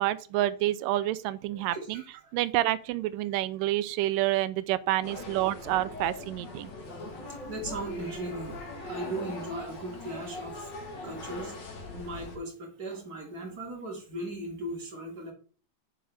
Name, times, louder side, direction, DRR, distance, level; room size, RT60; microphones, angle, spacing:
voice 1, 0.0-2.0 2.3-6.7, right 15 dB, 80° right, 2.1 m, -28 dB
voice 2, 1.5-2.3 7.5-8.6 8.9-10.7 11.0-11.5 11.9-15.3, right 2 dB, 30° right, 2.5 m, -38 dB
sound 1, 5.0-12.4, left 2 dB, 45° left, 1.5 m, -40 dB
8.4 x 7.1 x 3.5 m
omnidirectional pair, 4.1 m